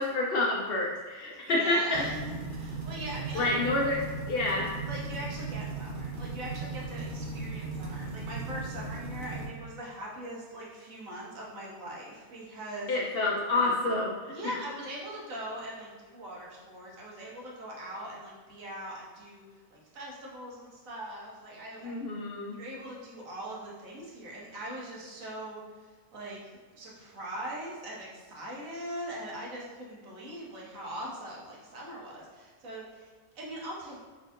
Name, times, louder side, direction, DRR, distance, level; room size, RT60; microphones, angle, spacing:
voice 1, 0.0-2.0 3.3-4.0 4.3-4.7 12.9-14.3 21.8-22.6, left 2 dB, 65° left, -2 dB, 0.6 m, -28 dB
voice 2, 1.2-3.8 4.9-12.9 14.3-19.4 19.7-22.0 22.5-26.4 26.7-33.1 33.3-34.0, right 1 dB, 75° right, -4 dB, 1.4 m, -41 dB
sound 1, 1.9-9.5, right 3 dB, 45° right, 0.7 m, -37 dB
4.3 x 3.4 x 2.5 m, 1.4 s
omnidirectional pair, 1.5 m